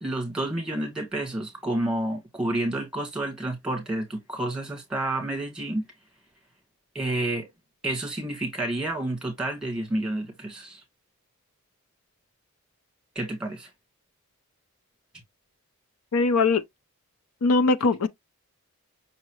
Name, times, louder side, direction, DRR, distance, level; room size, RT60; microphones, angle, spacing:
voice 1, 0.0-5.8 6.9-7.5 7.8-10.8 13.1-13.7, right 1 dB, 5° right, 1.6 m, -29 dB
voice 2, 16.1-16.6 17.4-18.1, left 3 dB, 80° left, 0.5 m, -21 dB
5.8 x 2.8 x 3.0 m
head